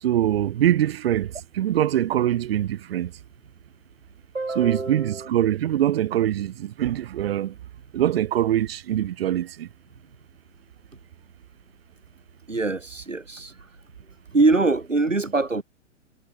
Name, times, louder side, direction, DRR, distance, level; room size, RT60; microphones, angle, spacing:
voice 1, 0.0-3.1 4.5-7.5 7.9-9.7, right 12 dB, 50° right, 2.8 m, -23 dB
voice 2, 4.3-5.3 12.5-13.5 14.3-15.6, right 3 dB, 90° right, 1.7 m, -23 dB
figure-of-eight pair, 115°, 37 cm